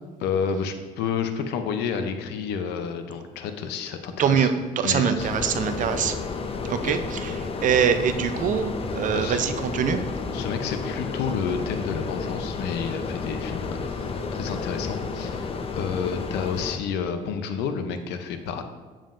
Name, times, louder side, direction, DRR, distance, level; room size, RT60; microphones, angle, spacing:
voice 1, 0.2-4.5 4.8-5.3 6.8-7.0 9.1-9.4 10.3-18.6, left 6 dB, 85° left, 8 dB, 0.6 m, -30 dB
voice 2, 4.2-6.2 6.7-7.3 7.6-10.0, right 7 dB, 50° right, 9 dB, 0.5 m, -23 dB
sound 1, 5.2-16.8, left 4 dB, 35° left, 0.6 m, -31 dB
7.3 x 7.3 x 2.5 m, 1.3 s
cardioid pair, 110°, 17 cm